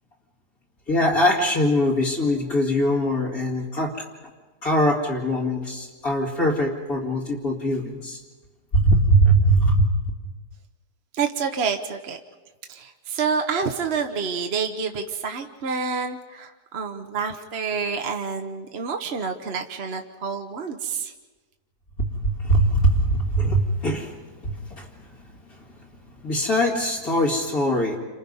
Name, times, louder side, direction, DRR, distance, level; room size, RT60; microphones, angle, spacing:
voice 1, 0.9-4.1 4.6-8.2 8.7-10.1 22.0-24.1 24.4-24.9 26.2-28.0, right 1 dB, 60° left, -3 dB, 2.8 m, -21 dB
voice 2, 11.1-12.2 12.7-21.1, right 5 dB, 45° right, 4 dB, 1.1 m, -28 dB
29.0 x 26.5 x 5.5 m, 1.3 s
omnidirectional pair, 1.7 m